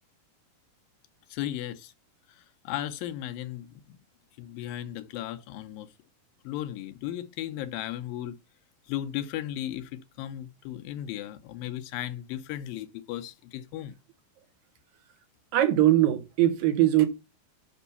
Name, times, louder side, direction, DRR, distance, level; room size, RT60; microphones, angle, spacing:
voice 1, 1.3-1.9 2.3-4.0 4.4-5.9 6.4-8.4 8.9-14.0, left 12 dB, 85° left, 2.6 m, -36 dB
voice 2, 15.5-17.1, right 13 dB, 80° right, 2.8 m, -21 dB
7.1 x 5.4 x 6.9 m
omnidirectional pair, 4.0 m